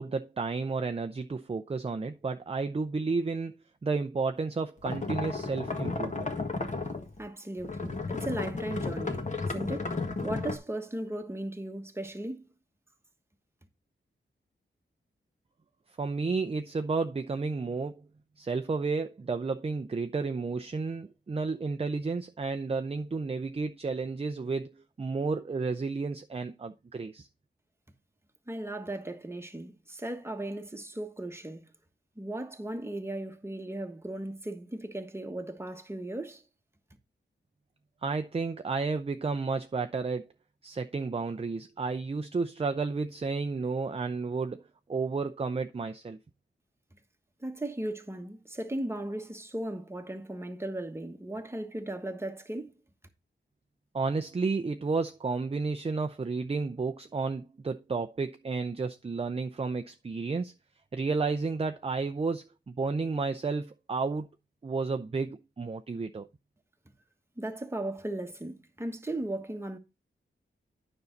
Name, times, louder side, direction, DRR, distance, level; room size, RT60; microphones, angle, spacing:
voice 1, 0.0-3.5 3.8-6.3 16.0-18.1 18.4-27.3 38.0-40.3 40.6-44.6 44.9-46.2 53.9-60.5 60.9-64.3 64.6-66.3, right 4 dB, 30° right, 0.6 m, -32 dB
sound 1, 4.9-7.2 7.6-10.6, left 3 dB, 35° left, 1.6 m, -33 dB
voice 2, 7.2-12.5 28.5-31.7 32.2-36.4 46.9-47.0 47.4-52.7 67.4-69.8, right 1 dB, 10° right, 1.3 m, -37 dB
9.6 x 5.5 x 3.9 m
wide cardioid pair, 100°, 20 cm